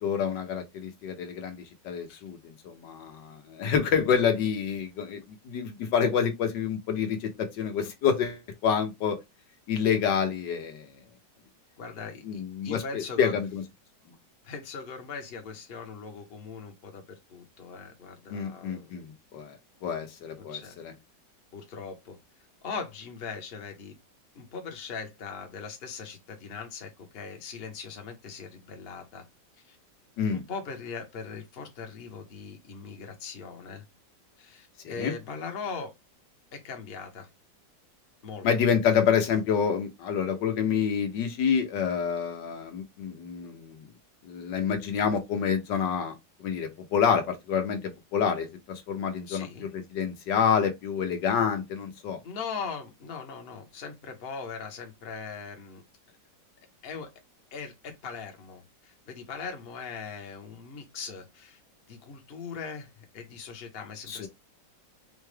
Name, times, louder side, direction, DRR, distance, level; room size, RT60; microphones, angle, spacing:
voice 1, 0.0-1.6 1.8-5.2 5.4-9.2 9.7-10.9 12.2-13.6 18.3-19.6 19.8-20.6 30.2-30.4 34.8-35.1 38.4-43.8 44.2-46.1 46.4-52.2 64.1-64.3, left 7 dB, 80° left, 1.6 m, -28 dB
voice 2, 11.8-13.3 14.4-19.1 20.4-20.8 21.5-22.2 22.6-23.9 24.3-29.2 29.7-29.8 30.3-33.8 34.4-35.9 36.5-37.3 38.2-38.5 49.3-49.7 52.2-55.8 56.8-57.1 57.5-61.6 61.9-64.3, left 5 dB, 40° left, 1.0 m, -40 dB
5.1 x 2.3 x 3.2 m
omnidirectional pair, 1.9 m